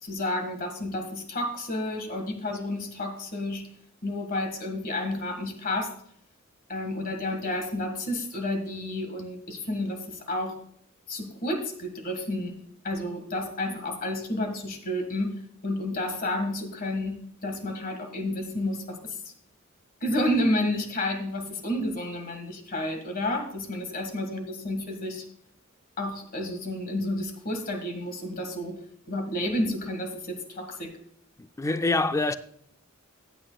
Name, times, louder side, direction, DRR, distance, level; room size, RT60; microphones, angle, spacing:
voice 1, 0.0-3.7 4.0-5.9 6.7-10.6 11.1-12.5 12.8-19.2 20.0-25.2 26.0-28.8 29.1-31.0, left 1 dB, 45° left, 1.7 m, -30 dB
voice 2, 31.4-32.3, left 2 dB, 15° left, 0.3 m, -25 dB
15.0 x 9.0 x 2.3 m
head